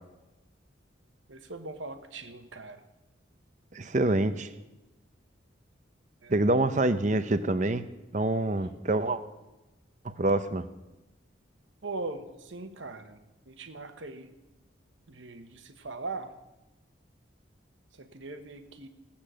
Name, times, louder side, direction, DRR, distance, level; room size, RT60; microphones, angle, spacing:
voice 1, 1.3-2.8 6.2-6.7 11.8-13.2 13.5-14.3 15.1-16.3 17.9-18.9, right 3 dB, 80° right, 9 dB, 1.2 m, -40 dB
voice 2, 3.7-4.5 6.3-7.8 8.1-9.2 10.0-10.7, right 2 dB, 40° right, 12 dB, 0.7 m, -26 dB
17.0 x 8.6 x 6.2 m, 1.0 s
head